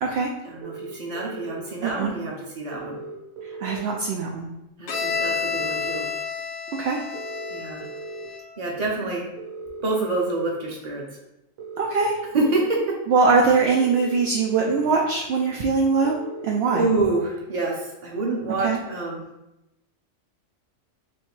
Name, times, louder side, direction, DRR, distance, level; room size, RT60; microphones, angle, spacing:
voice 1, 0.4-3.0 4.8-6.1 7.5-7.9 8.6-9.2 9.8-11.0 12.3-13.0 16.7-19.2, right 2 dB, 35° right, -2 dB, 1.0 m, -27 dB
sound 1, 0.6-1.6 2.7-3.8 4.9-6.0 7.1-8.3 9.4-10.5 11.6-12.7 13.8-14.9 16.0-17.1, right 3 dB, 85° right, 1.2 m, -37 dB
voice 2, 1.8-2.1 3.6-4.5 6.8-7.0 11.8-12.1 13.1-16.2 16.4-16.8 18.6-18.8, right 4 dB, 65° right, -1 dB, 0.7 m, -21 dB
Bowed string instrument, 4.9-8.6, left 5 dB, 85° left, 0.4 m, -30 dB
3.2 x 3.0 x 4.4 m, 0.90 s
omnidirectional pair, 1.4 m